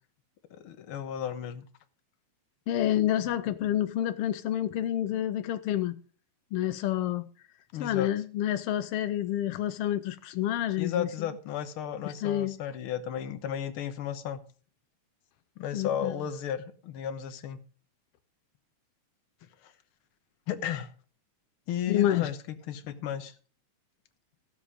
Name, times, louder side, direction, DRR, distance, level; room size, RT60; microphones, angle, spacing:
voice 1, 0.5-1.6 7.7-8.1 10.8-14.4 15.6-17.6 20.5-20.9 21.7-23.3, left 9 dB, 60° left, 1.6 m, -34 dB
voice 2, 2.7-6.0 6.5-7.3 7.8-11.3 12.0-12.6 15.7-16.2 21.9-22.3, left 12 dB, 85° left, 1.3 m, -28 dB
16.0 x 7.3 x 5.0 m
omnidirectional pair, 3.4 m